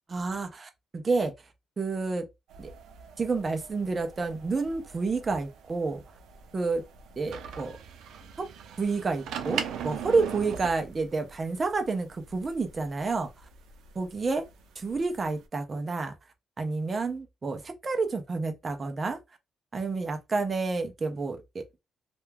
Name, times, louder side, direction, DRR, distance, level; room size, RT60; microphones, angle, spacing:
voice 1, 0.1-1.3 1.8-2.3 2.6-2.7 3.2-6.0 6.5-6.8 7.2-7.8 8.4-8.5 8.8-13.3 14.0-14.4 14.8-16.1 16.6-19.2 19.7-21.6, right 3 dB, 25° right, 0.4 m, -29 dB
sound 1, 2.5-15.4, right 8 dB, 90° right, 0.4 m, -41 dB
2.2 x 2.2 x 3.2 m
cardioid pair, 175°, 0 cm